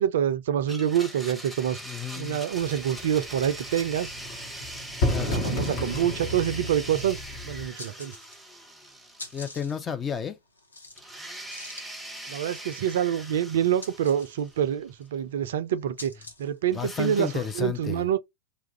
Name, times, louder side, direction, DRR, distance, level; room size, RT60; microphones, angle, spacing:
voice 1, 0.0-1.8 2.1-4.1 5.1-7.2 7.4-8.1 12.3-16.1 16.4-18.2, right 9 dB, 60° right, 0.4 m, -26 dB
Domestic sounds home sounds, 0.7-9.8 10.1-10.2 11.0-14.9 16.7-17.6, right 1 dB, 5° right, 0.8 m, -42 dB
voice 2, 1.9-2.4 5.1-5.5 9.3-10.4 16.7-18.0, left 7 dB, 20° left, 0.5 m, -32 dB
sound 1, 2.5-7.7, left 1 dB, 45° left, 1.1 m, -32 dB
sound 2, 7.1-7.2 7.6-8.6 8.9-16.6, left 2 dB, 80° left, 0.9 m, -46 dB
3.1 x 2.4 x 3.1 m
figure-of-eight pair, 90°, 0 cm